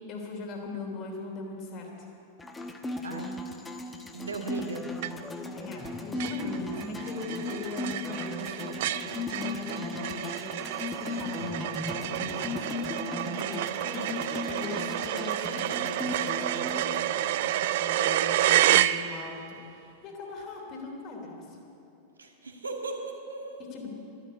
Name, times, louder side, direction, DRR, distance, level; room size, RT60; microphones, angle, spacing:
voice 1, 0.1-2.1 5.5-10.6 10.8-13.1 13.4-21.6 23.7-23.9, left 4 dB, 35° left, 1 dB, 3.2 m, -40 dB
sound 1, 2.4-16.8, left 2 dB, 10° left, 1.2 m, -37 dB
voice 2, 4.1-4.9 13.2-13.5 22.2-23.6, right 4 dB, 75° right, 2 dB, 1.9 m, -37 dB
sound 2, 5.0-5.5 5.8-5.9 6.2-19.5, right 13 dB, 55° right, 0.4 m, -29 dB
12.5 x 12.0 x 8.5 m, 2.7 s
figure-of-eight pair, 90°, 0 cm